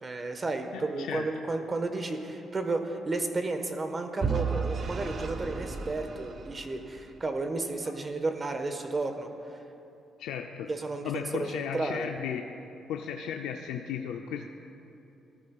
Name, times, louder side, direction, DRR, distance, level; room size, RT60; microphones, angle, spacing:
voice 1, 0.0-9.6 10.7-12.1, right 3 dB, 30° right, 6 dB, 1.3 m, -32 dB
voice 2, 0.7-1.3 7.8-7.9 10.2-10.7 11.0-12.6 12.9-14.5, left 8 dB, 90° left, 4 dB, 0.5 m, -35 dB
Vehicle / Engine, 4.2-7.2, right 5 dB, 50° right, 1.0 m, -33 dB
20.5 x 13.5 x 2.4 m, 2.8 s
cardioid pair, 90°, 0 cm